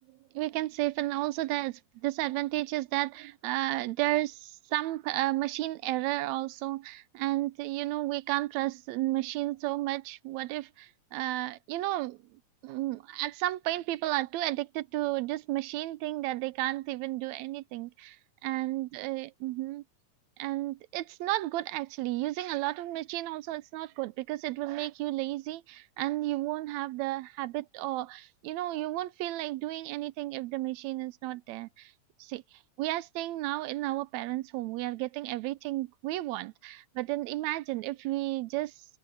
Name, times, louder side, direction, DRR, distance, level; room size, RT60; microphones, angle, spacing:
voice 1, 0.1-18.2 18.4-19.8 20.4-31.9 32.2-32.4 32.8-38.7, right 17 dB, 80° right, 1.8 m, -32 dB
omnidirectional pair, 3.4 m